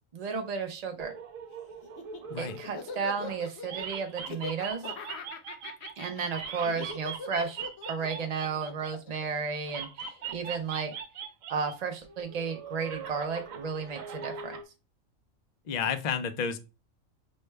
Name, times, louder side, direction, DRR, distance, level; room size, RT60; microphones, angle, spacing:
voice 1, 0.1-1.1 2.4-4.8 6.0-10.9 11.5-14.6, right 5 dB, 55° right, 4 dB, 0.4 m, -33 dB
sound 1, 1.0-3.4 3.6-9.2 9.7-11.8 12.0-14.6, right 6 dB, 80° right, 1.1 m, -41 dB
Laughter, 1.8-10.2, left 4 dB, 60° left, 0.9 m, -42 dB
voice 2, 15.7-16.6, left 7 dB, 80° left, 10 dB, 0.3 m, -31 dB
6.3 x 2.2 x 3.2 m, 0.29 s
omnidirectional pair, 1.4 m